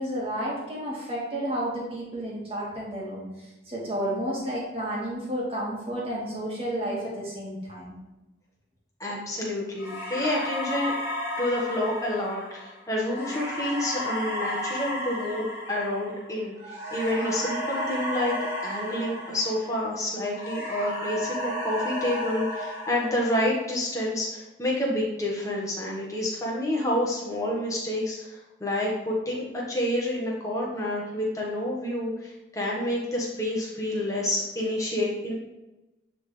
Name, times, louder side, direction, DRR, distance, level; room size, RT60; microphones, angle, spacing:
voice 1, 0.0-7.9, right 1 dB, 30° right, -5 dB, 1.9 m, -31 dB
voice 2, 9.0-10.9 11.4-18.3 18.6-35.3, left 1 dB, 15° left, -4 dB, 1.4 m, -29 dB
sound 1, 9.8-20.0 20.3-23.7, left 1 dB, 15° right, 1.6 m, -33 dB
9.1 x 3.8 x 3.3 m, 1.0 s
head